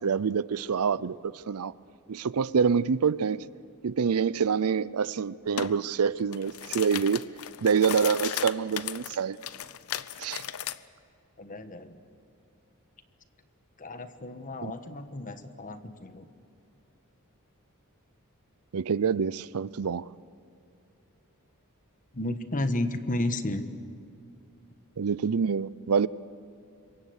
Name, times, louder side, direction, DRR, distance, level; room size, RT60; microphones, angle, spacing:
voice 1, 0.0-1.7 2.1-3.4 3.8-7.2 7.6-9.4 10.2-10.4 14.6-14.8 18.7-20.1 25.0-26.1, right 6 dB, 80° right, 0.5 m, -26 dB
sound 1, 5.6-5.7 6.2-10.8, left 10 dB, 75° left, 0.7 m, -36 dB
voice 2, 11.4-12.0 13.8-16.3 22.1-23.6, left 1 dB, 40° left, 1.3 m, -32 dB
26.5 x 23.0 x 6.5 m
head